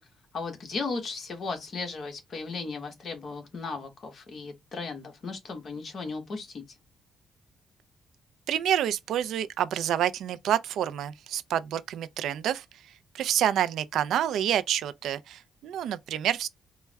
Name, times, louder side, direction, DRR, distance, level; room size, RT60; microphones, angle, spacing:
voice 1, 0.3-6.6, left 4 dB, 45° left, 1.2 m, -36 dB
voice 2, 8.5-12.6 13.1-16.5, right 10 dB, 80° right, 0.3 m, -28 dB
4.5 x 2.1 x 3.3 m
cardioid pair, 135°, 0 cm